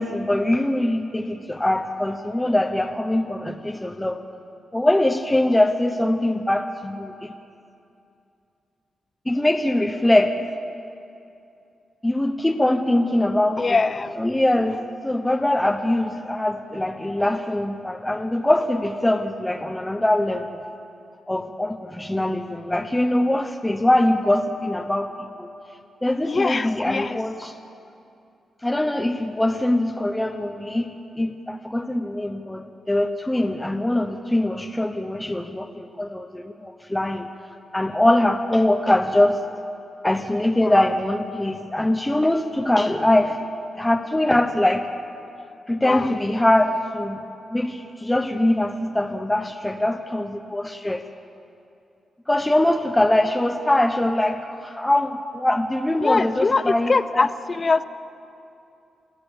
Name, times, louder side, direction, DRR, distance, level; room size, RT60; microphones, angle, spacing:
voice 1, 0.0-4.2 4.7-7.3 9.3-10.4 12.0-13.7 14.2-20.5 21.3-25.5 26.0-27.5 28.6-37.3 37.7-39.4 40.0-43.4 43.8-44.9 45.7-47.2 47.5-51.0 52.3-57.2, left 1 dB, 10° left, 5 dB, 0.9 m, -22 dB
voice 2, 13.6-14.2 26.2-27.2 40.6-40.8 45.8-46.1 56.0-57.8, left 4 dB, 35° left, 14 dB, 0.7 m, -22 dB
28.5 x 14.5 x 7.2 m, 2.6 s
cardioid pair, 95°, 0 cm